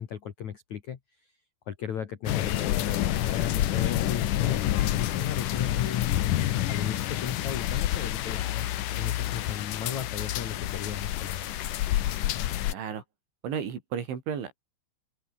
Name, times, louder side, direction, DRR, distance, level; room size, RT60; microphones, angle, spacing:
voice 1, 0.0-1.3 1.7-6.1 6.7-11.5, left 9 dB, 60° left, 2.1 m, -36 dB
sound 1, 2.3-12.7, left 13 dB, 85° left, 1.8 m, -28 dB
voice 2, 12.7-13.0 13.4-14.5, right 8 dB, 70° right, 6.2 m, -33 dB
open air
omnidirectional pair, 5.6 m